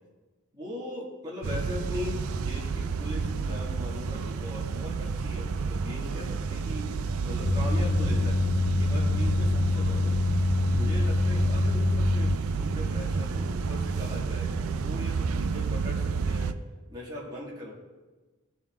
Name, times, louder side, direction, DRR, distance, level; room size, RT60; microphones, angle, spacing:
voice 1, 0.5-8.4 8.8-10.2 10.6-16.6 16.9-17.7, left 1 dB, 20° right, -6 dB, 2.0 m, -40 dB
sound 1, 1.4-16.5, right 4 dB, 85° right, 0.4 m, -30 dB
sound 2, 7.4-12.4, left 2 dB, 40° left, 0.4 m, -25 dB
16.5 x 5.6 x 3.6 m, 1.2 s
head